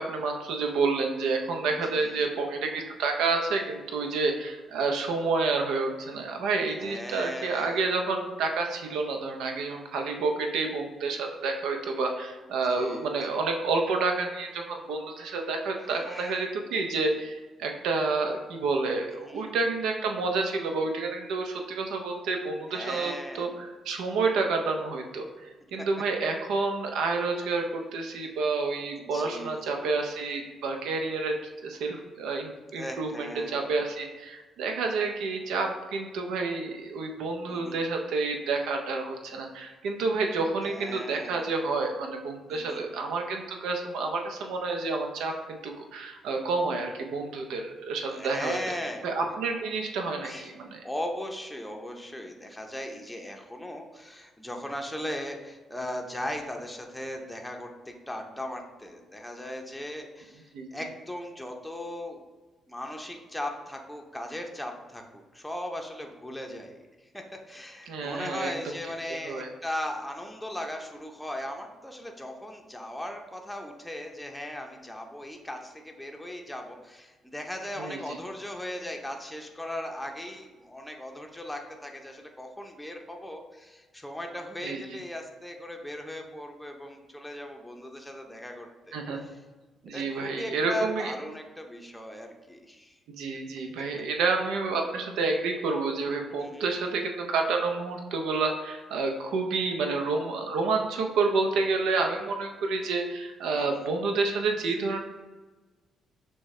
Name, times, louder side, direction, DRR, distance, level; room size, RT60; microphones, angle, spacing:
voice 1, 0.0-31.4 31.6-48.6 49.0-50.3 50.7-50.8 60.5-60.7 67.9-68.5 69.2-69.5 77.8-78.2 84.6-84.8 88.9-89.3 89.8-91.1 93.1-105.0, right 3 dB, 85° right, 3 dB, 0.6 m, -29 dB
voice 2, 1.6-2.5 6.8-7.8 12.7-13.1 15.8-16.4 19.1-19.5 22.7-23.6 29.0-29.9 32.8-33.8 37.5-37.8 40.6-41.5 42.5-42.9 48.1-49.1 50.2-50.5 50.8-62.2 62.7-89.4 89.9-93.0 96.4-96.7 103.6-103.9, left 1 dB, 5° left, 2 dB, 0.6 m, -38 dB
6.2 x 2.2 x 3.1 m, 1.3 s
cardioid pair, 90°, 0 cm